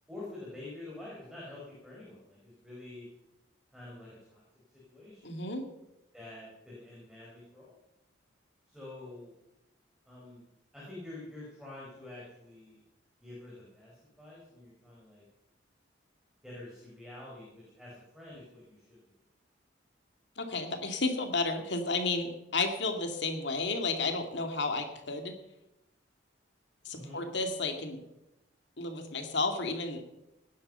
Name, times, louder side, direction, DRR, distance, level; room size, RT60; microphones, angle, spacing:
voice 1, 0.1-3.1 3.7-4.4 4.7-5.4 6.1-7.7 8.7-9.3 10.1-10.4 10.7-12.8 13.2-15.2 16.4-19.0 26.9-27.2, left 2 dB, 5° right, -6 dB, 5.0 m, -47 dB
voice 2, 5.2-5.6 20.4-25.3 26.8-28.0 28.8-30.0, left 3 dB, 60° left, 5 dB, 2.3 m, -32 dB
18.5 x 10.5 x 5.6 m, 0.89 s
head